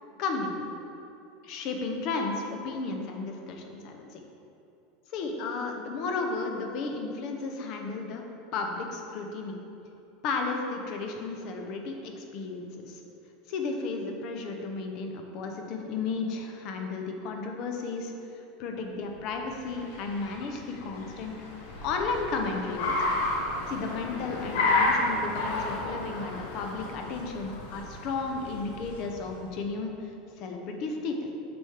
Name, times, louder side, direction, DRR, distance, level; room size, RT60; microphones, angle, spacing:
voice 1, 0.2-0.7 1.4-4.2 5.1-8.2 8.5-9.6 10.2-13.0 13.5-21.3 21.8-23.1 23.7-31.3, left 4 dB, 40° left, 3 dB, 0.7 m, -33 dB
Car, 19.2-29.5, left 2 dB, 75° left, 1.1 m, -32 dB
6.3 x 6.1 x 3.5 m, 2.9 s
supercardioid pair, 170°, 0 cm